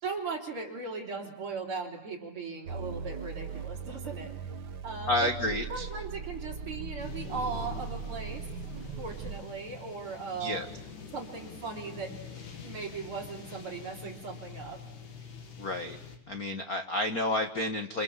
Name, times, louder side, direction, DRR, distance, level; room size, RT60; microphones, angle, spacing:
voice 1, 0.0-4.3 4.8-8.5 9.0-10.6 11.1-12.2 12.6-14.8, right 4 dB, 45° right, 1 dB, 4.5 m, -38 dB
sound 1, 2.7-9.4, right 6 dB, 60° right, 1.0 m, -39 dB
voice 2, 5.1-5.9 10.4-10.7 15.6-16.0 16.3-18.0, left 1 dB, 45° left, 7 dB, 1.2 m, -30 dB
sound 2, 7.0-16.2, left 5 dB, 80° left, 4.2 m, -45 dB
29.0 x 28.0 x 7.3 m, 0.84 s
omnidirectional pair, 3.5 m